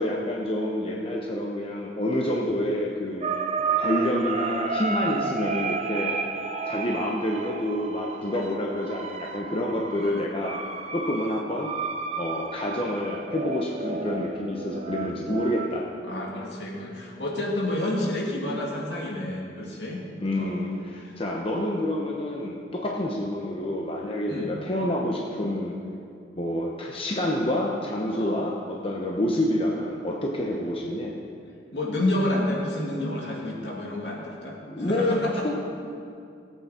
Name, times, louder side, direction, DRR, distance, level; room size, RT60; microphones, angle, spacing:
voice 1, 0.0-6.2 6.7-10.6 10.9-11.7 12.2-15.9 20.2-25.8 26.4-31.1 34.7-35.5, left 1 dB, 30° left, -1 dB, 0.9 m, -28 dB
sound 1, 3.2-15.7, right 4 dB, 35° right, 0.7 m, -32 dB
voice 2, 5.0-5.3 16.0-20.0 20.3-20.6 24.3-24.5 28.1-28.4 31.7-35.3, left 1 dB, 70° left, -2 dB, 2.3 m, -29 dB
17.5 x 8.4 x 4.3 m, 2.5 s
head